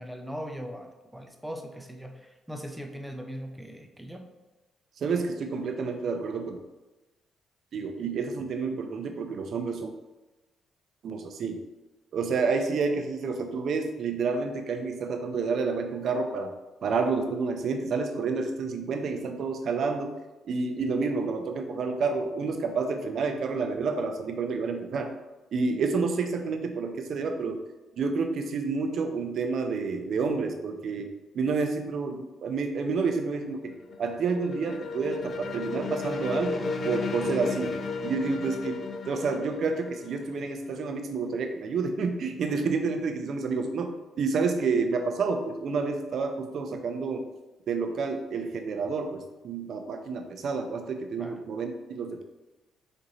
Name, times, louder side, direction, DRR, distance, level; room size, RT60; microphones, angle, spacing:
voice 1, 0.0-4.3 51.2-51.4, equal, 5° right, 4 dB, 0.6 m, -40 dB
voice 2, 5.0-6.6 7.7-9.9 11.0-11.6 12.1-16.5 16.8-20.1 20.4-25.1 25.5-27.6 28.0-31.1 31.3-37.7 38.0-38.8 39.1-43.9 44.2-47.2 47.7-52.2, right 4 dB, 60° right, 6 dB, 0.6 m, -29 dB
sound 1, 33.3-41.1, left 4 dB, 50° left, 0.5 m, -34 dB
6.6 x 2.6 x 3.1 m, 1.1 s
cardioid pair, 90°, 0 cm